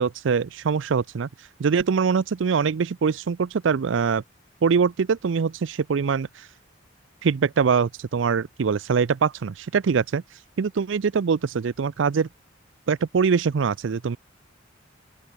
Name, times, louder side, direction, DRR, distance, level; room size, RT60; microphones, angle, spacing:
voice 1, 0.0-4.2 4.6-6.5 7.2-12.3 12.9-14.2, right 6 dB, 85° right, 0.5 m, -23 dB
open air
head